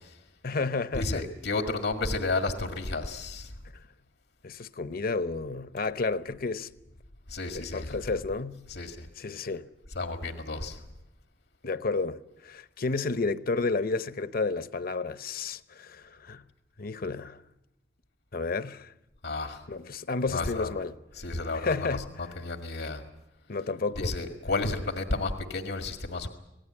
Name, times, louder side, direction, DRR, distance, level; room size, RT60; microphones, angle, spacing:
voice 1, 0.4-1.3 4.4-6.7 7.5-8.6 9.2-9.7 11.6-16.4 16.8-17.4 18.3-18.9 19.7-21.0 21.5-22.3 23.5-24.2, left 3 dB, 55° left, 0.9 m, -31 dB
voice 2, 0.9-3.5 7.3-7.9 8.7-9.1 10.0-10.8 19.2-19.6 20.3-20.7 21.2-22.0 22.4-23.0 24.0-26.3, left 3 dB, 85° left, 1.9 m, -31 dB
26.5 x 18.0 x 8.8 m
head